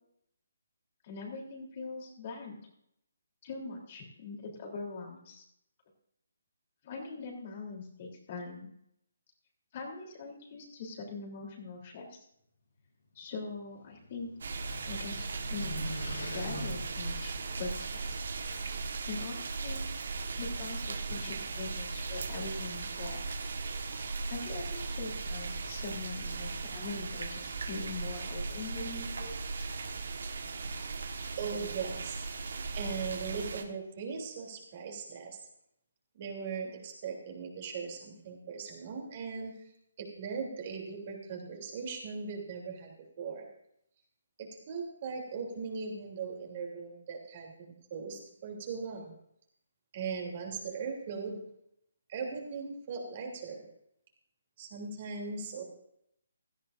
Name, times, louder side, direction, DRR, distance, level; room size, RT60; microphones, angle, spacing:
voice 1, 1.0-2.6 3.4-5.4 6.8-8.7 9.7-12.2 13.1-14.3 14.9-15.9 16.3-17.3 17.6-18.2 19.1-19.8 20.4-23.2 24.3-29.4, left 4 dB, 40° left, 0 dB, 3.3 m, -42 dB
sound 1, 13.4-18.2, left 1 dB, 75° left, 3.2 m, -44 dB
sound 2, 14.4-33.6, right 3 dB, 65° right, 1.4 m, -37 dB
voice 2, 31.4-32.2 32.7-35.4 36.1-39.6 40.0-43.4 44.4-47.5 47.9-49.1 49.9-51.4 52.1-53.6 54.6-55.6, right 5 dB, 40° right, 0 dB, 3.0 m, -39 dB
16.5 x 13.0 x 2.6 m, 0.75 s
figure-of-eight pair, 150°, 0 cm